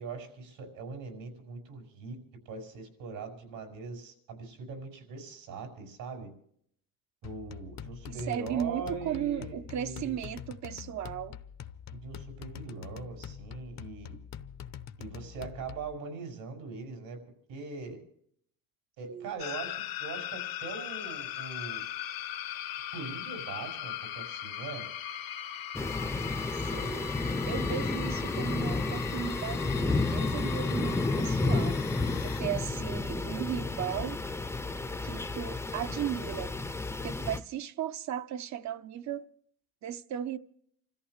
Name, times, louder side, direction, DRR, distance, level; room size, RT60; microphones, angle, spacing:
voice 1, 0.0-2.2 2.5-6.3 7.2-10.2 11.9-14.1 15.0-17.2 17.5-18.0 19.0-21.8 22.9-24.9, right 4 dB, 85° right, 5.8 m, -41 dB
sound 1, 7.2-16.0, left 9 dB, 50° left, 0.8 m, -45 dB
voice 2, 8.1-11.4 19.1-19.3 26.7-27.1 27.4-31.8 32.2-34.2 35.0-36.5 37.0-39.2 39.8-40.4, right 10 dB, 55° right, 0.9 m, -36 dB
sound 2, 19.4-32.4, left 11 dB, 75° left, 1.4 m, -39 dB
sound 3, 25.7-37.4, left 3 dB, 10° left, 0.6 m, -31 dB
29.0 x 14.0 x 3.3 m
cardioid pair, 140°, 34 cm